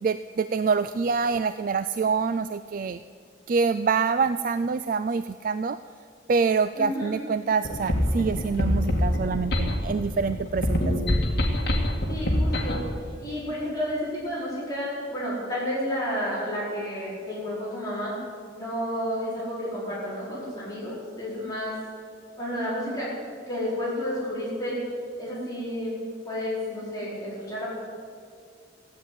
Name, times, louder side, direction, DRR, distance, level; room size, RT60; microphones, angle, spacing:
voice 1, 0.0-3.0 3.5-5.8 6.3-11.2, right 5 dB, 45° right, 12 dB, 0.3 m, -26 dB
voice 2, 6.8-7.1 12.1-12.8 13.2-18.1 18.5-21.7 22.4-23.1 23.5-24.8 25.2-26.0 26.2-27.7, equal, 20° left, -8 dB, 4.7 m, -31 dB
sound 1, 7.6-12.9, left 1 dB, 55° left, 2.1 m, -25 dB
15.5 x 8.9 x 9.3 m, 2.2 s
head